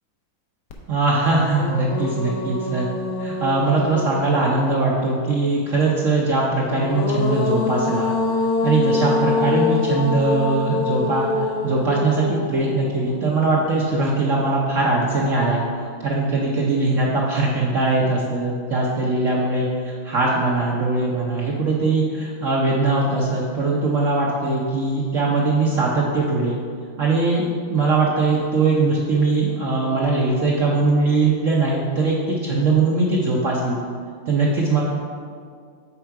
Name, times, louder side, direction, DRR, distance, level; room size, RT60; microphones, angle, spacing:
sound 1, 0.7-0.8 1.2-4.9 6.5-13.8, left 3 dB, 60° left, 1.0 m, -25 dB
voice 1, 0.9-2.9 3.2-8.1 8.6-15.6 16.0-26.6 27.0-33.8 34.3-34.8, right 3 dB, 70° right, -3 dB, 0.7 m, -21 dB
7.3 x 4.4 x 4.6 m, 2.1 s
omnidirectional pair, 2.2 m